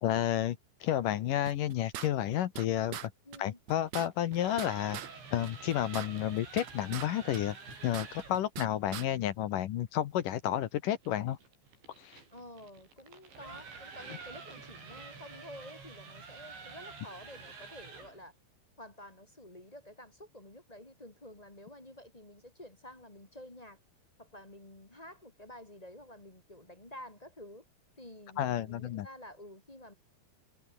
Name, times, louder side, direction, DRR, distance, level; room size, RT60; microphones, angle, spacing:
voice 1, 0.0-3.1 3.4-5.0 5.3-7.6 7.8-11.4 12.0-12.2 28.4-29.1, left 11 dB, 70° left, 2.2 m, -31 dB
sound 1, 1.4-2.7 2.9-3.1 3.3-3.4 3.7-5.1 5.4-7.1 7.3-8.7 8.9-9.1, right 11 dB, 65° right, 1.8 m, -42 dB
voice 2, 3.2-3.6 12.3-18.3 18.8-23.8 24.2-27.6 28.0-29.9, left 1 dB, 15° left, 1.4 m, -50 dB
sound 2, 4.1-8.4 11.0-18.2, right 5 dB, 80° right, 9.9 m, -48 dB
omnidirectional pair, 5.1 m